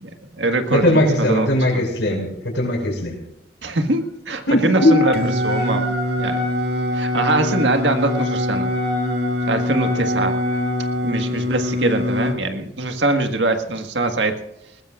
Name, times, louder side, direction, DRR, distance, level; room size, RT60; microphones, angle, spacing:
voice 1, 0.0-1.5 1.7-1.8 3.6-5.1 5.4-5.8 6.2-6.5 6.9-8.7 9.4-10.4 11.0-14.4, right 2 dB, 85° right, 6 dB, 1.7 m, -22 dB
voice 2, 0.7-3.2 4.5-5.1, left 1 dB, 90° left, 1 dB, 6.0 m, -19 dB
Wind instrument woodwind instrument, 4.7-11.2, equal, 25° right, 7.8 m, -28 dB
Singing, 5.1-12.4, left 2 dB, 65° right, 1.9 m, -24 dB
20.5 x 20.0 x 2.5 m, 0.80 s
head